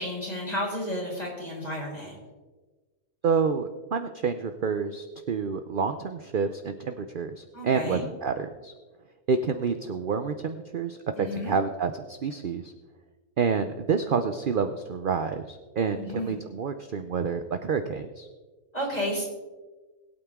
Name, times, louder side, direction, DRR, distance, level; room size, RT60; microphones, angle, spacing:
voice 1, 0.0-2.1 7.5-8.0 11.2-11.5 16.0-16.4 18.7-19.2, equal, 25° left, -3 dB, 4.2 m, -32 dB
voice 2, 3.2-8.7 9.3-12.7 13.4-18.3, right 5 dB, 50° right, 9 dB, 0.6 m, -28 dB
21.5 x 8.8 x 3.6 m, 1.3 s
omnidirectional pair, 1.6 m